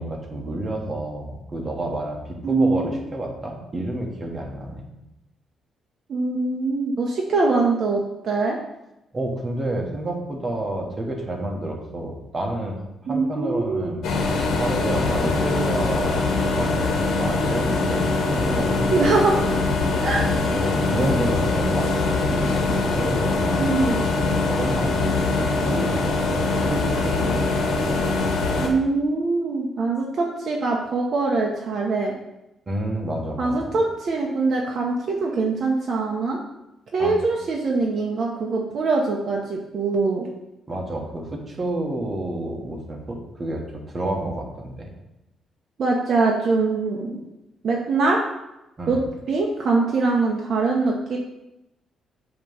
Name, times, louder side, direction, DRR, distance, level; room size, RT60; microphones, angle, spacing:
voice 1, 0.0-2.2 2.5-4.9 9.1-12.8 13.1-19.3 20.3-23.7 24.4-27.5 32.7-33.8 37.0-37.1 40.7-43.6 43.9-44.9 48.8-49.0, right 1 dB, 25° right, 0 dB, 1.1 m, -29 dB
voice 2, 2.4-3.0 6.1-8.6 13.1-13.9 18.9-19.4 20.0-20.3 23.6-24.0 28.6-32.1 33.4-36.4 36.9-40.3 45.8-47.2 47.6-48.2 48.9-49.0 49.3-51.2, right 3 dB, 45° right, -1 dB, 0.7 m, -23 dB
sound 1, 14.0-28.7, left 3 dB, 85° left, 1.3 m, -23 dB
8.7 x 3.0 x 5.3 m, 0.93 s
cardioid pair, 170°, 0 cm